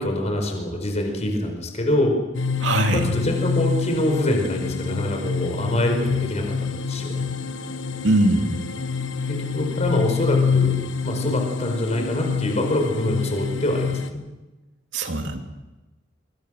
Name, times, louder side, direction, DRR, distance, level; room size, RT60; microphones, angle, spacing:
voice 1, 0.0-2.1 2.9-7.3 9.3-10.7 11.0-14.2, left 1 dB, 35° left, 3 dB, 4.8 m, -25 dB
sound 1, 2.3-14.1, left 6 dB, 80° left, 1.3 m, -26 dB
voice 2, 2.6-3.1 8.0-8.6 14.9-15.4, right 1 dB, 75° right, 4 dB, 2.8 m, -21 dB
25.0 x 23.5 x 6.4 m, 1.1 s
head